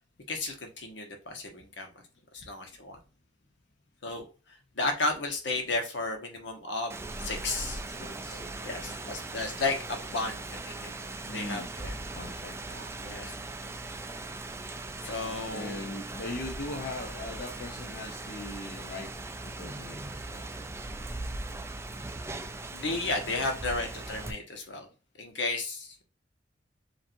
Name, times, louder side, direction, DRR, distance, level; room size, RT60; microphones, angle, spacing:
voice 1, 0.3-1.9 2.3-3.0 4.0-4.2 4.7-7.0 7.2-7.8 8.6-10.9 11.3-11.9 13.0-13.3 15.0-15.9 22.7-24.9 25.2-26.0, left 3 dB, 75° left, 3 dB, 1.2 m, -33 dB
Rain, 6.9-24.3, right 2 dB, 15° right, 0.3 m, -39 dB
voice 2, 7.9-9.2 11.2-13.0 15.5-19.2 19.4-20.5 23.4-23.8, left 2 dB, 55° left, 2 dB, 0.7 m, -41 dB
7.2 x 2.6 x 2.6 m, 0.32 s
head